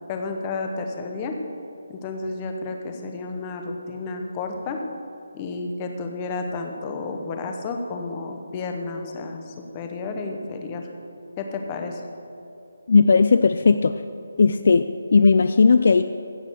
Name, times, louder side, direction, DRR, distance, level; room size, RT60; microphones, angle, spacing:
voice 1, 0.1-1.4 1.9-4.8 5.3-10.9 11.4-12.0, left 3 dB, 15° left, 4 dB, 0.9 m, -31 dB
voice 2, 12.9-13.9 14.4-16.0, left 4 dB, 50° left, 10 dB, 0.4 m, -16 dB
15.5 x 6.7 x 7.2 m, 2.7 s
hypercardioid pair, 175°, 0 cm